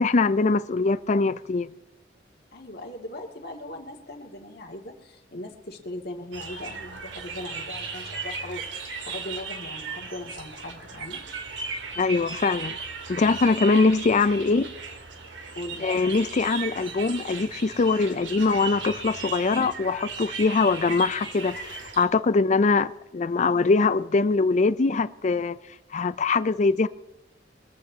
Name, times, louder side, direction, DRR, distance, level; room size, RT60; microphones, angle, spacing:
voice 1, 0.0-1.7 12.0-12.7 13.1-14.7 15.8-25.6 25.9-26.9, left 3 dB, 40° left, 0.4 m, -22 dB
voice 2, 2.5-11.2 15.5-15.9, left 1 dB, 60° left, 2.3 m, -39 dB
sound 1, 6.3-22.1, right 5 dB, 85° right, 2.0 m, -36 dB
24.0 x 14.0 x 2.8 m
head